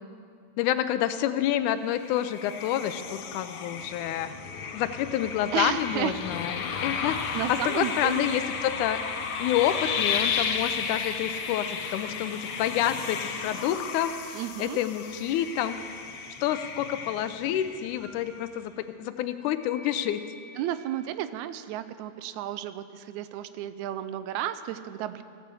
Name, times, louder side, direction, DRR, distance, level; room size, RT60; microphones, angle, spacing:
voice 1, 0.6-4.3 4.7-7.2 7.5-9.0 9.4-15.8 16.4-20.2, left 11 dB, 90° left, 11 dB, 2.1 m, -28 dB
sound 1, 1.9-18.2, left 6 dB, 65° left, 1.4 m, -33 dB
voice 2, 5.5-6.1 6.6-6.9 7.3-8.3 14.3-14.8 20.6-25.2, right 12 dB, 80° right, 12 dB, 1.9 m, -33 dB
Telephone, 15.0-15.6 16.4-16.7 18.0-18.3 19.6-20.6, equal, 10° left, 3.0 m, -49 dB
16.0 x 8.7 x 7.6 m, 2.3 s
omnidirectional pair, 3.4 m